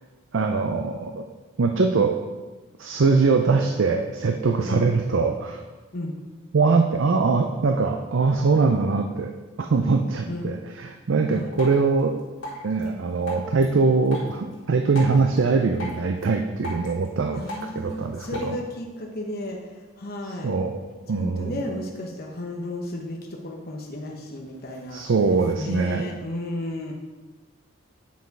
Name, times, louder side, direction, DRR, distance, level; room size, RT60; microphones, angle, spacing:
voice 1, 0.3-1.2 1.6-2.2 2.8-5.6 6.5-9.3 9.6-12.1 12.6-17.4 17.8-18.6 20.4-20.8 21.1-21.6 24.9-26.1, right 4 dB, 60° right, 4 dB, 0.5 m, -22 dB
Drip, 11.5-18.5, left 1 dB, 65° left, 2.4 m, -40 dB
voice 2, 17.3-20.5 21.1-25.1 25.6-26.9, left 1 dB, 45° left, 0 dB, 0.9 m, -33 dB
9.3 x 4.7 x 4.7 m, 1.2 s
head